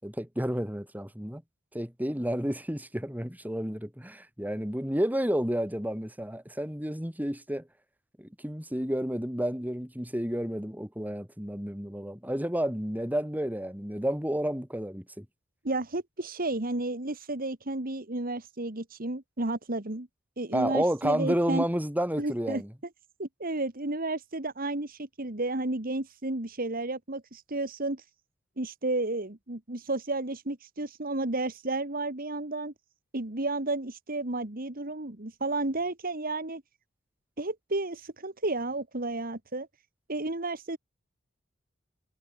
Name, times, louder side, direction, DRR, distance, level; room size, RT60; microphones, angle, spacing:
voice 1, 0.0-1.4 1.7-7.7 8.2-15.2 20.5-22.7, equal, 10° right, 5.0 m, -31 dB
voice 2, 15.6-20.1 20.4-21.6 22.2-22.6 23.2-28.0 28.6-32.7 33.1-36.6 37.4-39.7 40.1-40.8, right 2 dB, 45° right, 2.2 m, -32 dB
head